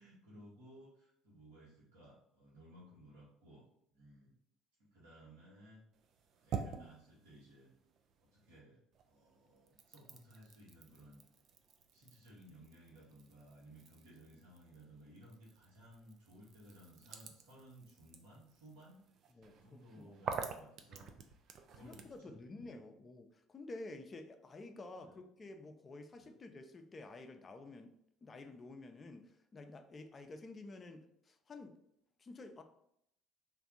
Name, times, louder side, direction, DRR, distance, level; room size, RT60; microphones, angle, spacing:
voice 1, 0.0-3.6 3.9-4.3 4.8-5.8 6.4-7.7 8.2-11.2 11.9-21.1 21.7-22.8 25.0-25.2 26.2-26.3, right 1 dB, 75° right, -8 dB, 1.2 m, -59 dB
sound 1, 5.9-8.6 8.9-22.2, right 6 dB, 50° right, 0.4 m, -49 dB
voice 2, 19.3-20.3 21.8-27.9 28.2-31.8 32.2-32.6, left 2 dB, 30° left, 6 dB, 0.5 m, -51 dB
3.3 x 2.6 x 3.9 m, 0.74 s
figure-of-eight pair, 55°, 0 cm